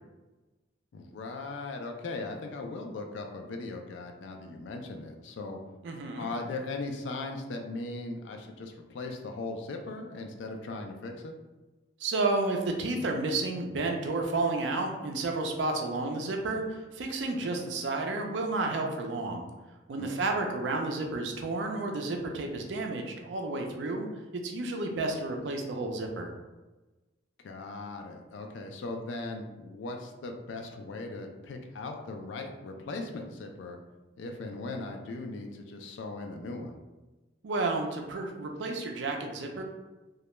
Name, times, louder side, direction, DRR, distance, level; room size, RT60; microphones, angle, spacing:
voice 1, 0.9-5.6 6.2-11.4 20.0-20.5 27.4-33.8 34.2-36.8, left 3 dB, 70° left, 3 dB, 0.3 m, -38 dB
voice 2, 5.8-6.3 12.0-19.4 19.9-24.1 24.3-26.3 37.4-39.6, right 2 dB, 70° right, 3 dB, 0.4 m, -31 dB
2.3 x 2.1 x 2.9 m, 1.1 s
head